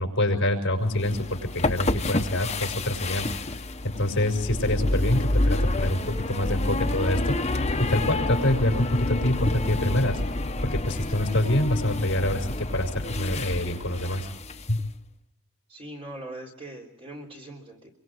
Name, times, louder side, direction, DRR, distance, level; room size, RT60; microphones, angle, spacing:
voice 1, 0.0-3.3 3.8-7.4 7.8-10.2 10.6-14.3 14.7-14.8, left 1 dB, 55° left, 3 dB, 5.8 m, -26 dB
sound 1, 0.9-14.8, left 2 dB, 30° left, 1.0 m, -28 dB
voice 2, 15.7-17.9, right 1 dB, 25° right, 1 dB, 3.7 m, -41 dB
26.0 x 24.0 x 4.9 m, 0.71 s
head